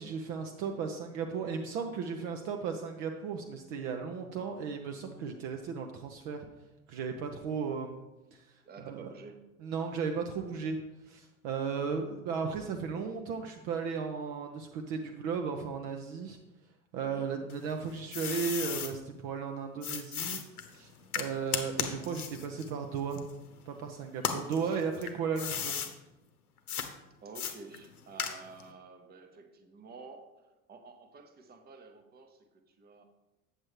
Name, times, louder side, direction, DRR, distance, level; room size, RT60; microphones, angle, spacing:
voice 1, 0.0-6.5 6.9-8.0 8.3-8.4 8.8-9.1 9.6-10.8 11.1-16.4 16.9-20.4 20.7-20.9 21.2-23.3 23.7-25.7, right 6 dB, 45° right, 4 dB, 0.7 m, -35 dB
voice 2, 8.6-9.4 17.0-17.3 21.2-21.5 24.6-24.8 27.2-30.3 30.7-33.0, right 4 dB, 20° right, 6 dB, 0.9 m, -51 dB
sound 1, 17.5-18.9 19.8-23.7 24.1-25.9 26.7-26.9 27.4-28.7, left 7 dB, 75° left, 0.8 m, -36 dB
8.1 x 7.4 x 3.1 m, 1.0 s
figure-of-eight pair, 70°, 44 cm